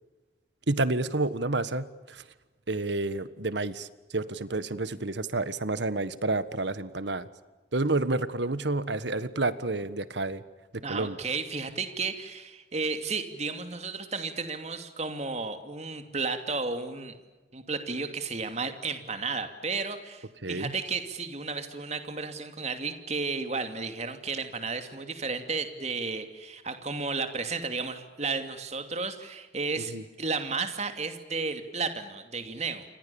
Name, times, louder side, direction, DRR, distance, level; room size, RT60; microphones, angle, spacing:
voice 1, 0.7-2.2 2.7-3.9 4.1-7.3 7.7-10.4 10.7-11.2 20.4-20.7 29.9-30.0, right 2 dB, 75° right, 14 dB, 1.5 m, -29 dB
voice 2, 10.8-17.1 17.5-32.8, right 4 dB, 35° right, 8 dB, 2.7 m, -33 dB
29.5 x 25.5 x 7.2 m, 1.2 s
head